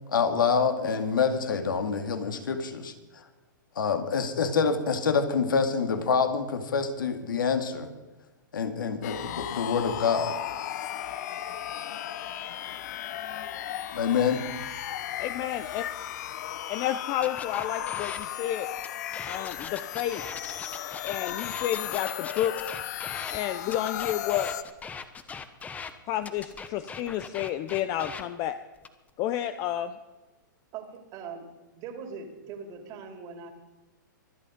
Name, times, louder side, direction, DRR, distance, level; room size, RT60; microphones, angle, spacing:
voice 1, 0.1-3.2 3.8-7.9 8.5-10.4 13.9-14.4, left 5 dB, 80° left, 7 dB, 2.3 m, -26 dB
sound 1, 9.0-24.6, left 12 dB, 55° left, 1.0 m, -35 dB
voice 2, 15.2-15.8 16.7-18.7 19.3-20.2 21.0-22.7 23.3-24.5 26.1-28.6 29.2-30.0, left 12 dB, 35° left, 11 dB, 0.7 m, -30 dB
sound 2, 17.2-18.3 18.8-23.4 23.7-25.9 26.2-28.2 28.8-29.1, left 5 dB, 15° left, 1.0 m, -40 dB
voice 3, 30.7-31.5 31.7-33.5, right 6 dB, 35° right, 6 dB, 2.8 m, -41 dB
24.5 x 8.4 x 5.2 m, 1.1 s
hypercardioid pair, 130°, 11 cm